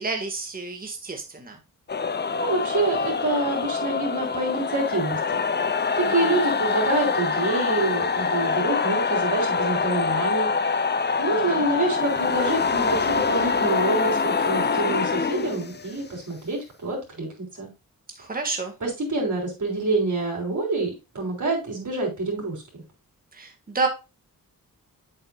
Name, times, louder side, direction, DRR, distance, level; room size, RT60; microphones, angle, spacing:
voice 1, 0.0-1.6 6.0-6.4 11.3-11.7 18.2-18.7 23.3-23.9, right 3 dB, 25° right, 4 dB, 1.7 m, -30 dB
sound 1, 1.9-16.1, left 5 dB, 30° left, 0.7 m, -25 dB
voice 2, 2.3-5.4 6.0-10.5 11.2-17.7 18.8-22.6, right 2 dB, 55° right, -1 dB, 3.8 m, -27 dB
7.9 x 7.7 x 2.4 m, 0.27 s
wide cardioid pair, 100°, 35 cm